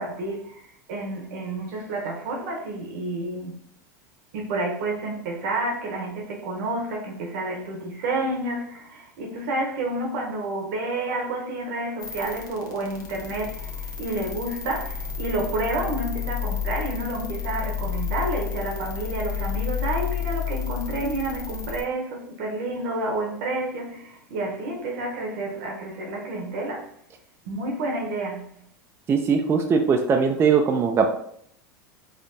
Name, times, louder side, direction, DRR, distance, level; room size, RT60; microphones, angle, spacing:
voice 1, 0.0-3.6 4.3-26.9 27.4-28.6, right 2 dB, 70° right, 0.9 m, -30 dB
sound 1, 12.0-21.8, left 7 dB, 45° left, 0.9 m, -31 dB
voice 2, 29.1-31.1, right 5 dB, 25° right, 0.4 m, -20 dB
4.3 x 2.6 x 2.6 m
hypercardioid pair, 95°, 10 cm